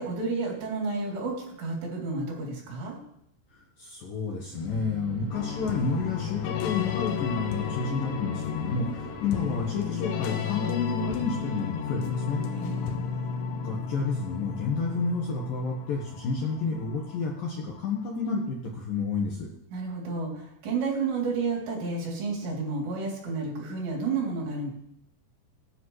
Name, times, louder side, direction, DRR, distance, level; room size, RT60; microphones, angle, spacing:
voice 1, 0.0-3.0 12.5-12.9 19.7-24.7, right 4 dB, 60° right, -3 dB, 5.3 m, -31 dB
voice 2, 3.5-12.4 13.6-19.5, left 4 dB, 65° left, -1 dB, 2.4 m, -30 dB
sound 1, 4.5-9.9, left 2 dB, 35° right, 4.4 m, -43 dB
sound 2, 5.3-17.9, left 7 dB, 80° left, 3.5 m, -33 dB
23.5 x 10.0 x 3.2 m, 0.75 s
omnidirectional pair, 5.7 m